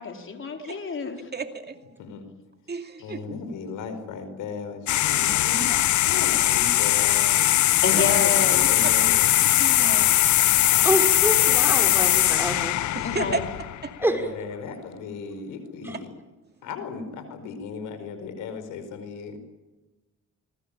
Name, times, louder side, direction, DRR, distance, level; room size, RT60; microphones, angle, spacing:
voice 1, 0.0-1.2 7.8-8.7 13.0-13.4, left 5 dB, 40° left, 4 dB, 4.4 m, -29 dB
voice 2, 1.3-1.9 2.7-3.2 9.6-10.5 10.8-11.0 12.9-13.4 13.8-13.9 15.9-16.0, right 4 dB, 35° right, 6 dB, 2.4 m, -33 dB
voice 3, 3.0-5.7 6.0-7.6 7.9-9.3 14.0-16.1 16.6-19.4, left 5 dB, 85° left, 10 dB, 4.9 m, -36 dB
sound 1, 4.9-14.0, left 14 dB, 70° left, 0.8 m, -20 dB
voice 4, 10.8-12.7 14.0-14.2 15.9-16.0, right 1 dB, 5° right, 4 dB, 5.9 m, -26 dB
25.0 x 20.5 x 8.9 m, 1.1 s
cardioid pair, 90°, 30 cm